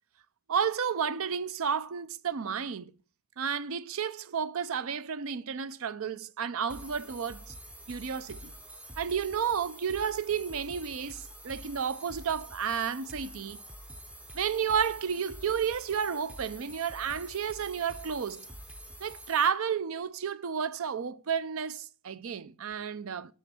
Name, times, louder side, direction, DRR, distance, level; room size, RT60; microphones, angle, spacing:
voice 1, 0.5-2.9 3.4-7.5 7.9-8.5 9.0-13.6 14.3-18.5 19.0-23.3, right 7 dB, 65° right, 0.5 m, -31 dB
sound 1, 6.7-19.5, right 1 dB, 5° right, 0.5 m, -47 dB
14.5 x 6.1 x 4.3 m
head